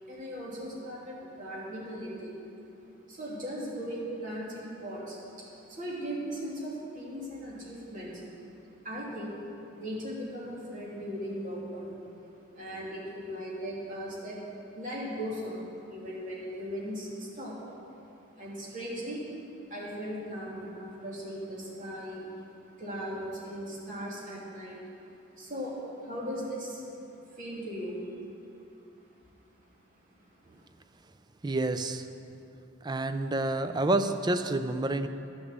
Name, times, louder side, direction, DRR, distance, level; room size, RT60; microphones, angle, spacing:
voice 1, 0.1-2.4 3.1-8.2 8.6-9.4 9.7-14.4 14.7-19.3 19.7-24.8 25.3-26.8 27.3-28.2 30.1-30.6, equal, 40° right, -6 dB, 2.7 m, -38 dB
voice 2, 31.4-32.1 32.8-35.1, right 2 dB, 20° right, 10 dB, 0.4 m, -28 dB
10.5 x 7.2 x 7.4 m, 2.8 s
head